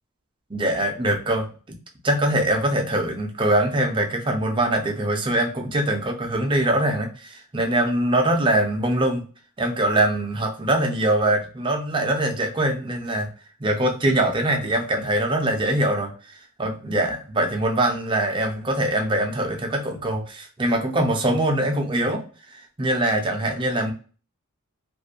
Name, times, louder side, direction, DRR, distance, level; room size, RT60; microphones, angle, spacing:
voice 1, 0.5-1.5 2.0-9.2 9.6-13.3 13.6-16.1 16.6-22.2 22.5-23.9, right 1 dB, 20° right, 3 dB, 0.5 m, -23 dB
2.4 x 2.1 x 2.5 m, 0.38 s
head